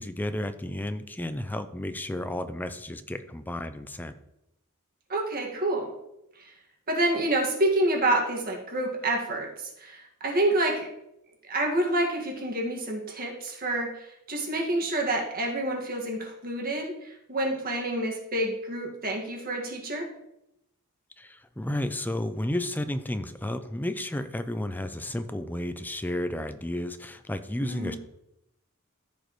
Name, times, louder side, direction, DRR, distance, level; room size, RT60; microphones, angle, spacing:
voice 1, 0.0-4.1 21.2-28.0, left 1 dB, 10° left, 10 dB, 0.5 m, -32 dB
voice 2, 5.1-5.9 6.4-6.5 6.9-10.9 11.5-20.1 27.6-28.0, right 1 dB, 45° right, -1 dB, 1.9 m, -28 dB
14.0 x 5.2 x 3.1 m, 0.84 s
head